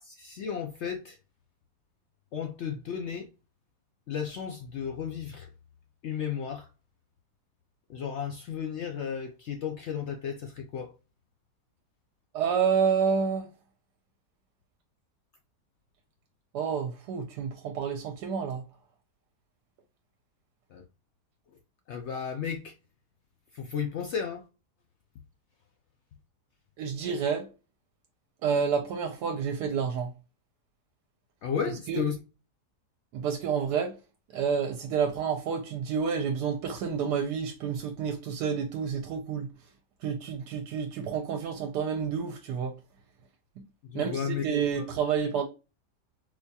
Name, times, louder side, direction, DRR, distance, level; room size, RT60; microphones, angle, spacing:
voice 1, 0.0-1.2 2.3-3.3 4.1-5.5 6.0-6.7 7.9-10.9 20.7-20.8 21.9-22.7 23.5-24.4 31.4-32.2 43.8-44.9, left 7 dB, 90° left, 0.6 m, -34 dB
voice 2, 12.3-13.5 16.5-18.6 26.8-27.5 28.4-30.1 31.9-32.0 33.1-33.9 34.3-39.5 40.0-42.7 43.9-45.5, right 6 dB, 80° right, 1.1 m, -29 dB
4.4 x 2.3 x 2.6 m
omnidirectional pair, 1.8 m